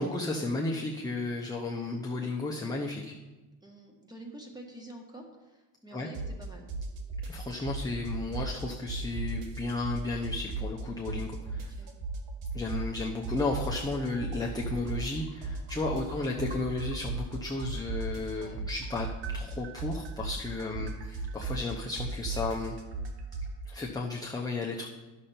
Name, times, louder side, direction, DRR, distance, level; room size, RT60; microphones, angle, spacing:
voice 1, 0.0-3.1 5.9-6.1 7.2-11.7 12.5-19.1 19.3-22.8 23.6-24.9, left 3 dB, 10° left, -1 dB, 0.8 m, -33 dB
voice 2, 3.6-6.7 11.5-12.0 16.0-16.2 18.4-18.6 20.6-20.9, right 1 dB, 10° right, 1 dB, 1.8 m, -48 dB
sound 1, 6.1-6.4 6.7-8.6 8.9-10.8 11.1-13.0 13.2-17.3 17.6-23.5, right 4 dB, 85° right, 1.3 m, -35 dB
10.5 x 6.6 x 4.3 m, 1.1 s
cardioid pair, 110°, 43 cm